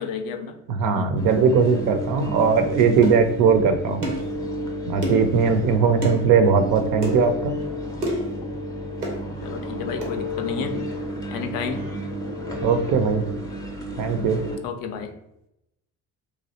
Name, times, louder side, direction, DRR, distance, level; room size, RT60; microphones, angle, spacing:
voice 1, 0.0-0.5 1.0-1.2 9.4-10.9 11.3-11.8 14.6-15.1, left 6 dB, 50° left, 6 dB, 0.5 m, -31 dB
voice 2, 0.7-4.0 4.9-7.6 12.6-13.3 14.0-14.4, right 5 dB, 45° right, 8 dB, 0.5 m, -19 dB
sound 1, 1.2-14.6, equal, 10° left, 0.6 m, -32 dB
sound 2, 3.0-3.2 4.0-4.3 5.0-5.3 6.0-6.2 7.0-7.2 8.0-8.3 9.0-9.2 10.0-10.2, equal, 90° right, 0.7 m, -28 dB
3.1 x 2.3 x 2.7 m, 0.83 s
figure-of-eight pair, 50°, 46 cm